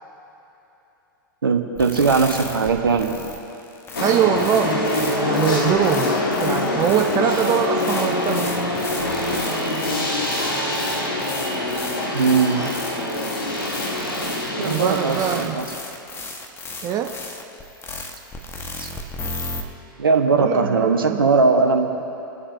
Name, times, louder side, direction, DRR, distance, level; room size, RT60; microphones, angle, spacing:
voice 1, 1.4-3.1 12.1-12.7 14.6-15.7 18.8-18.9 20.0-22.0, right 4 dB, 80° right, 4 dB, 1.1 m, -19 dB
sound 1, 1.8-19.6, left 3 dB, 20° left, 1.3 m, -35 dB
sound 2, 3.9-15.4, left 1 dB, 75° left, 1.8 m, -24 dB
voice 2, 4.0-6.1 6.4-8.5 14.6-15.6 16.8-17.1 20.4-21.2, right 9 dB, 30° right, 4 dB, 0.7 m, -23 dB
Gong, 5.2-11.1 11.4-11.5, left 10 dB, 55° left, 0.6 m, -33 dB
28.5 x 9.8 x 2.7 m, 3.0 s
figure-of-eight pair, 95°, 12 cm